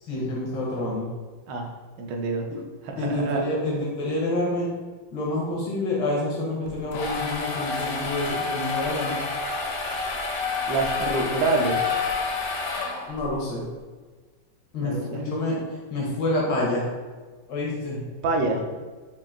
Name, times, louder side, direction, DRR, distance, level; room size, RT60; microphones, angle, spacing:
voice 1, 0.0-1.1 3.0-4.7 5.1-9.2 13.1-13.7 14.7-15.6 15.9-16.9 17.5-18.0, left 1 dB, 85° left, -4 dB, 1.6 m, -27 dB
voice 2, 2.0-2.5 2.8-3.4 10.7-11.9 14.8-15.2 18.2-18.6, right 3 dB, 80° right, 3 dB, 1.3 m, -26 dB
sound 1, 6.7-13.3, left 4 dB, 70° left, 0.9 m, -29 dB
5.3 x 2.5 x 2.4 m, 1.4 s
omnidirectional pair, 1.9 m